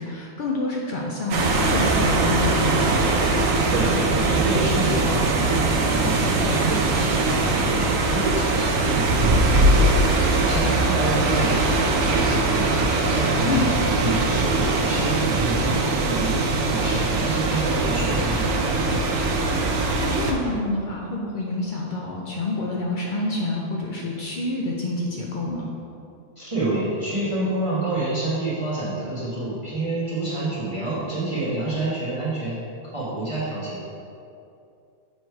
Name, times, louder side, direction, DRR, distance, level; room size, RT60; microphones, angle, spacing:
voice 1, 0.0-3.1 10.6-11.2 13.5-13.6 19.5-25.7, left 2 dB, 75° left, -2 dB, 0.4 m, -28 dB
sound 1, 1.3-20.3, right 2 dB, 85° right, 1.1 m, -21 dB
voice 2, 3.7-18.7 26.4-32.6 32.9-33.9, right 2 dB, 25° right, -10 dB, 1.2 m, -28 dB
6.5 x 3.2 x 4.5 m, 2.5 s
omnidirectional pair, 1.5 m